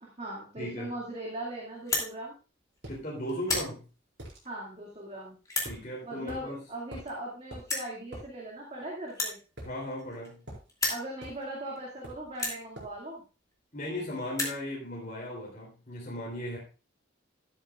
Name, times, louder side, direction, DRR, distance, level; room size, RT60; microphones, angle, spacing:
voice 1, 0.0-2.3 4.4-5.4 6.0-9.4 10.9-13.2, right 1 dB, 30° right, -3 dB, 2.2 m, -39 dB
voice 2, 0.6-1.0 2.9-3.8 5.6-6.6 9.6-10.4 13.7-16.6, left 1 dB, 45° left, -4 dB, 3.3 m, -37 dB
sound 1, 1.8-2.1 2.8-3.0 3.3-3.7 4.5-4.6 5.5-5.7 6.8-6.9 7.1-7.2 7.7-7.9 9.1-10.4 10.7-11.1 11.8-11.9 12.3-12.6 13.5-13.6 13.8-13.9 14.2-14.6, left 3 dB, 20° left, 2.8 m, -32 dB
sound 2, 2.8-3.0 3.5-3.7 4.2-4.4 5.7-5.9 6.3-6.4 6.9-7.1 7.5-7.7 8.1-8.3 9.6-10.1 10.5-10.7 11.2-11.4 12.0-12.3 12.8-13.0, right 1 dB, 60° right, 4.8 m, -44 dB
12.5 x 12.0 x 2.4 m, 0.34 s
head